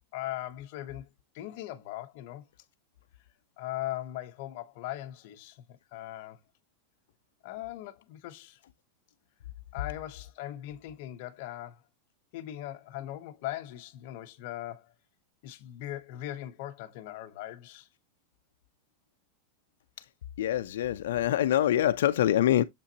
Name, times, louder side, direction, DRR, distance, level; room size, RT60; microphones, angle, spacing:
voice 1, 0.1-1.1 1.3-2.5 3.6-6.4 7.4-8.6 9.7-11.8 12.3-14.9 15.4-17.9, left 14 dB, 45° left, 0.9 m, -39 dB
voice 2, 20.4-22.6, left 12 dB, 80° left, 0.5 m, -25 dB
6.9 x 5.6 x 2.8 m
supercardioid pair, 175°, 0 cm